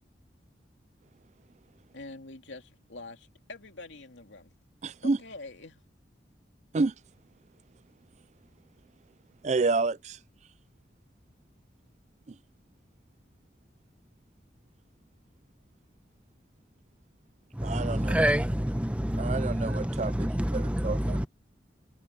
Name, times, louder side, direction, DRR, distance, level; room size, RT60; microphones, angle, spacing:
voice 1, 1.9-4.5 5.2-5.8, left 2 dB, 85° left, 2.8 m, -45 dB
voice 2, 4.8-5.2 6.7-6.9 9.4-10.2 17.6-18.2 19.2-21.3, right 3 dB, 40° right, 0.4 m, -29 dB
voice 3, 17.5-21.3, equal, 5° right, 0.9 m, -28 dB
head